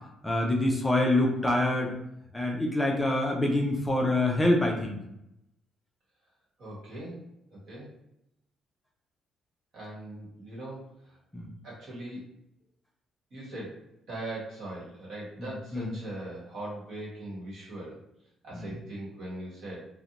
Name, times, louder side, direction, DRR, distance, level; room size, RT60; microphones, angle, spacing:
voice 1, 0.2-1.9 2.3-5.0 11.3-11.5 15.4-15.9 18.5-18.7, left 1 dB, 10° left, 0 dB, 0.4 m, -26 dB
voice 2, 6.6-7.2 7.5-7.9 9.7-11.2 11.6-12.2 13.3-18.0 18.4-19.9, right 1 dB, 55° right, -5 dB, 1.1 m, -40 dB
2.5 x 2.1 x 2.8 m, 0.82 s
cardioid pair, 175°, 0 cm